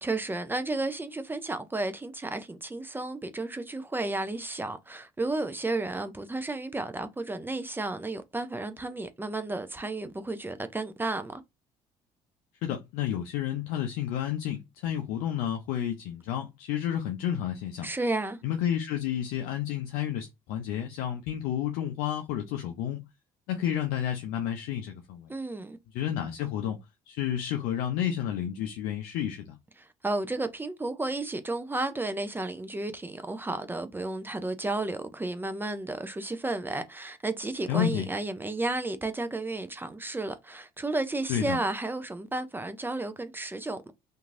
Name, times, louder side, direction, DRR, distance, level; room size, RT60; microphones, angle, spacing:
voice 1, 0.0-11.4 17.8-18.4 25.3-25.8 29.8-43.9, right 2 dB, 15° right, 0.5 m, -32 dB
voice 2, 12.6-17.9 18.4-23.0 23.5-25.3 25.9-26.8 27.1-29.6 37.7-38.1 41.3-41.6, left 10 dB, 80° left, 0.5 m, -31 dB
2.9 x 2.6 x 2.5 m
supercardioid pair, 70°, 15 cm